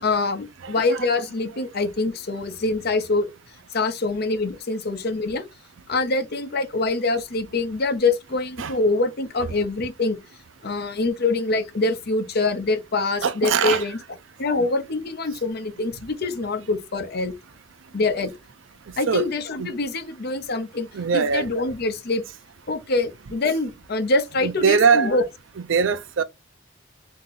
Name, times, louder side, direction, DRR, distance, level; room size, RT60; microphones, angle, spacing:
voice 1, 0.0-3.3 3.7-5.5 5.9-10.2 10.6-14.0 14.4-17.3 17.9-18.3 19.0-20.9 21.1-22.2 22.7-25.2, left 3 dB, 55° left, 0.8 m, -24 dB
voice 2, 0.6-1.0 8.6-8.7 13.2-13.9 14.6-14.7 19.1-19.3 19.6-19.7 20.9-21.5 24.4-25.1 25.7-26.2, right 6 dB, 85° right, 0.5 m, -21 dB
3.7 x 2.8 x 4.0 m
head